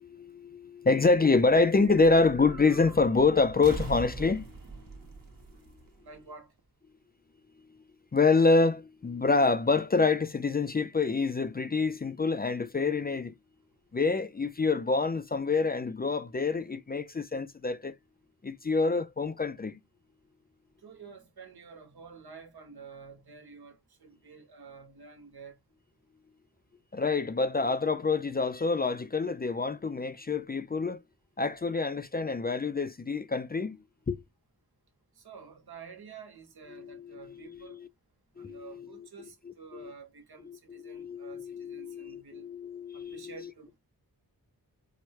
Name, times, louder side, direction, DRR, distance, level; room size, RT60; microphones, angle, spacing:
voice 1, 0.4-4.4 8.1-13.3 13.9-17.9 18.4-19.7 26.9-31.0 31.4-33.8 34.1-34.2 36.7-37.9 38.4-39.1 39.7-39.9 40.5-43.5, left 4 dB, 25° left, 0.4 m, -27 dB
sound 1, 0.9-6.6, right 3 dB, 60° right, 1.1 m, -43 dB
voice 2, 6.0-6.5 20.8-25.6 35.1-37.8 38.4-42.5 42.9-43.8, right 5 dB, 85° right, 1.3 m, -49 dB
4.7 x 2.2 x 2.9 m
wide cardioid pair, 105°, 37 cm